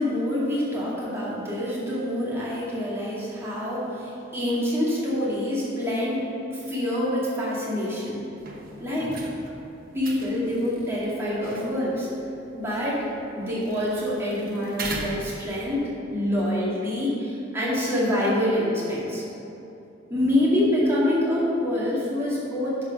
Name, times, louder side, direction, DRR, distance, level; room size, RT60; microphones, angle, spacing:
voice 1, 0.0-8.2 8.8-9.3 9.9-12.1 12.5-15.8 16.1-19.2 20.1-22.8, left 1 dB, 15° right, -8 dB, 2.2 m, -26 dB
sound 1, 8.4-15.9, right 3 dB, 50° right, 1.0 m, -40 dB
10.5 x 4.3 x 6.0 m, 2.8 s
head